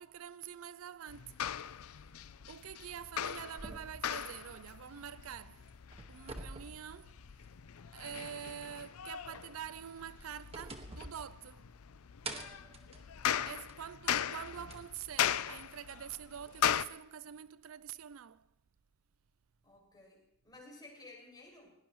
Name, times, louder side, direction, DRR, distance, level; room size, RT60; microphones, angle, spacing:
voice 1, 0.0-1.4 2.5-5.7 6.1-7.2 7.9-11.7 13.5-18.5, right 9 dB, 70° right, 0.4 m, -46 dB
sound 1, 1.1-16.9, left 9 dB, 80° left, 0.5 m, -39 dB
sound 2, 3.6-5.3 5.7-7.7 8.0-8.1 9.8-11.9 12.2-13.9 14.7-14.8 15.9-16.0, right 2 dB, 30° right, 1.5 m, -48 dB
voice 2, 12.1-12.9 19.6-21.7, left 2 dB, 20° left, 5.9 m, -56 dB
20.5 x 18.0 x 3.1 m
head